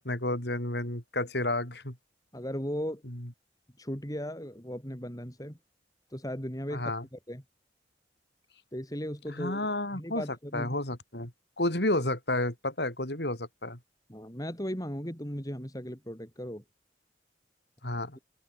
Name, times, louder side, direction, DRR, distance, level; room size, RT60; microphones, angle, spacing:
voice 1, 0.0-2.0 6.7-7.0 9.3-10.2 10.5-11.3 11.6-13.8 17.8-18.2, left 1 dB, 65° left, 5.8 m, -31 dB
voice 2, 2.3-3.0 3.8-5.6 6.1-6.8 7.1-7.4 8.7-9.7 9.9-10.8 14.1-16.6, equal, 20° left, 7.4 m, -37 dB
open air
head